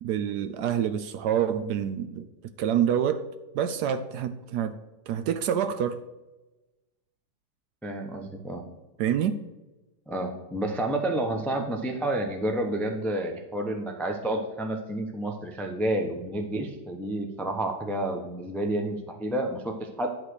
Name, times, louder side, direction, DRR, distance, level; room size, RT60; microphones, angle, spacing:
voice 1, 0.0-2.3 2.6-3.2 3.5-4.7 5.1-6.0 9.0-9.4, right 9 dB, 70° right, 1.0 m, -27 dB
voice 2, 7.8-8.6 10.1-20.1, right 1 dB, ahead, 0.3 m, -30 dB
10.5 x 4.1 x 6.4 m
omnidirectional pair, 2.0 m